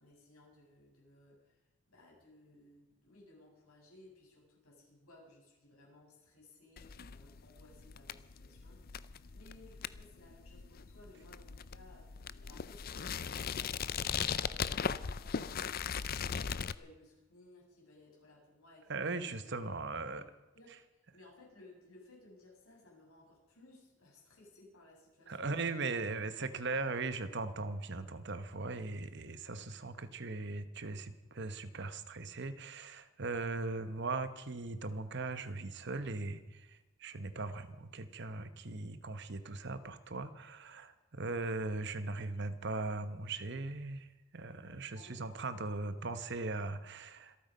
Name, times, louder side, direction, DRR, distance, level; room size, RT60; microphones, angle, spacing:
voice 1, 0.0-15.6 16.3-19.7 20.0-20.2 20.5-26.0 26.3-26.8 44.9-45.2, left 2 dB, 85° left, -3 dB, 7.8 m, -60 dB
sound 1, 6.8-16.7, left 7 dB, 45° left, 0.5 m, -39 dB
voice 2, 18.9-20.2 25.3-47.4, right 3 dB, 55° right, 11 dB, 1.1 m, -39 dB
25.5 x 9.2 x 5.6 m, 1.1 s
head